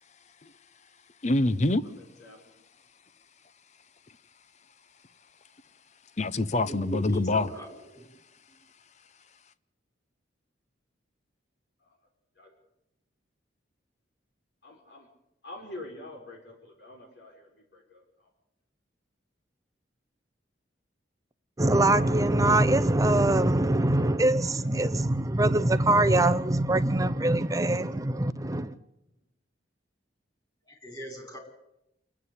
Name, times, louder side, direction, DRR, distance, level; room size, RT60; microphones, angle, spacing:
voice 1, 1.2-1.8 6.2-7.5, left 2 dB, 40° left, 0.8 m, -25 dB
voice 2, 1.8-2.4 11.8-12.0 12.4-12.5 14.6-15.1 15.4-18.3 27.5-27.7 28.5-28.6 29.0-29.1, left 2 dB, 65° left, 5.1 m, -46 dB
voice 3, 6.7-8.1 8.5-8.6 30.6-31.4, right 2 dB, 20° left, 5.9 m, -39 dB
voice 4, 21.6-28.7, right 2 dB, 20° right, 0.7 m, -23 dB
28.0 x 9.9 x 9.7 m
head